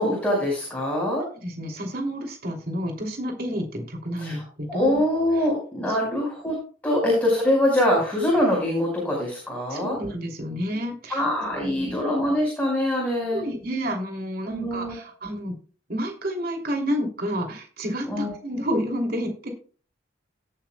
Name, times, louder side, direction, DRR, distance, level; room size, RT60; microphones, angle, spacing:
voice 1, 0.0-1.2 4.2-4.4 4.7-6.6 6.8-10.0 11.1-13.4 14.4-14.9 18.1-18.3, left 1 dB, 10° left, -3 dB, 5.0 m, -23 dB
voice 2, 1.3-5.0 5.4-5.5 5.9-6.2 9.7-11.9 13.3-15.5 15.9-19.5, equal, 55° right, 3 dB, 3.0 m, -30 dB
18.0 x 8.7 x 2.3 m, 0.39 s
head